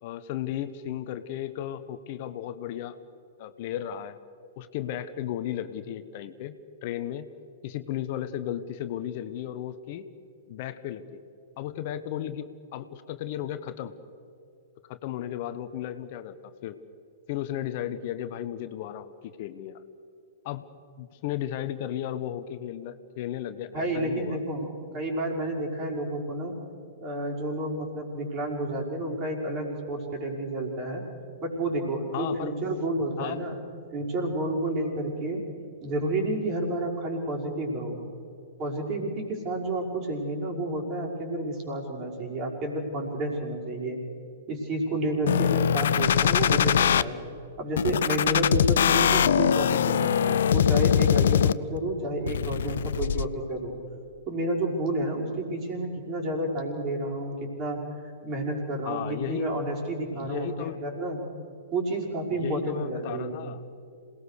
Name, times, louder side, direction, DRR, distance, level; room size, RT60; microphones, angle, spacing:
voice 1, 0.0-3.0 3.4-4.2 4.6-7.3 7.6-10.1 10.5-11.2 11.6-13.9 14.9-16.8 17.3-19.8 20.4-20.7 21.0-24.4 32.1-32.7 33.2-33.4 58.8-59.5 60.1-60.8 62.3-63.6, left 11 dB, 45° left, 12 dB, 1.0 m, -35 dB
voice 2, 23.7-26.5 27.0-31.0 31.4-33.6 33.9-35.4 35.8-38.0 38.6-44.0 44.5-47.2 47.6-53.8 54.3-57.8 58.2-61.2 61.7-63.4, right 1 dB, 35° right, 0 dB, 5.7 m, -30 dB
sound 1, 45.3-47.0 47.8-51.8 52.3-53.3, left 9 dB, 60° left, 0.6 m, -22 dB
27.5 x 19.0 x 6.7 m, 2.5 s
figure-of-eight pair, 110°, 0 cm